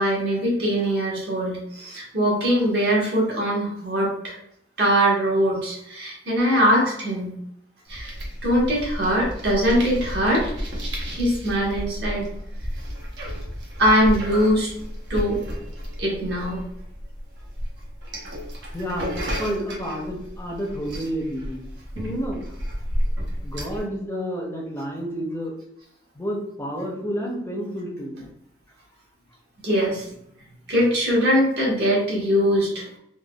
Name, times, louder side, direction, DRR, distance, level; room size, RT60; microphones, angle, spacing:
voice 1, 0.0-4.3 4.8-7.3 7.9-8.1 8.4-10.5 11.1-12.3 13.8-14.7 15.1-15.4 16.0-16.7 29.6-30.1 30.7-32.9, equal, 65° right, -4 dB, 1.1 m, -22 dB
sound 1, 7.9-23.8, equal, 80° right, 0.7 m, -32 dB
voice 2, 18.7-21.6 22.0-22.6 23.4-25.5 26.1-28.2, equal, 15° left, -1 dB, 0.5 m, -30 dB
3.4 x 2.2 x 2.2 m, 0.75 s
head